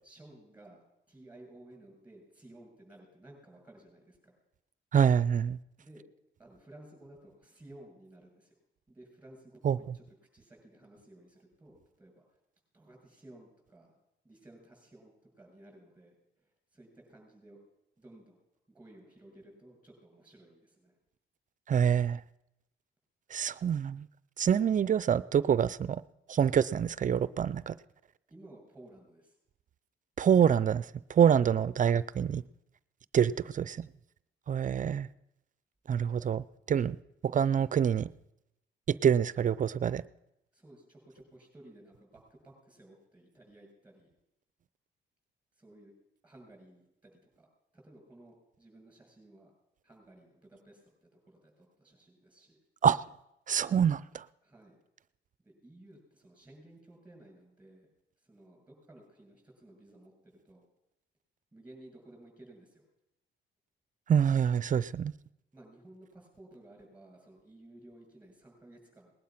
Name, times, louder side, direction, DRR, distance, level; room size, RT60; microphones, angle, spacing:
voice 1, 0.0-4.4 5.8-6.0 6.4-8.6 8.9-10.0 10.3-12.2 12.7-14.0 14.2-17.6 18.0-18.4 18.7-21.0 23.3-23.4 28.3-29.4 33.3-33.8 36.1-36.3 40.5-44.1 45.5-45.9 46.2-49.5 49.8-52.6 54.4-54.8 55.4-57.9 58.2-60.6 61.5-62.8 65.5-69.1, right 1 dB, 5° right, 1 dB, 7.0 m, -56 dB
voice 2, 4.9-5.6 9.6-9.8 21.7-22.2 23.3-24.1 24.4-26.0 26.3-27.7 30.2-32.4 33.1-33.3 33.6-33.7 34.5-35.1 35.9-36.4 36.7-37.0 37.2-38.1 38.9-40.0 52.8-53.0 53.5-54.2 64.1-65.1, right 8 dB, 40° right, 18 dB, 0.5 m, -26 dB
19.5 x 11.5 x 5.9 m, 0.86 s
cardioid pair, 90°, 20 cm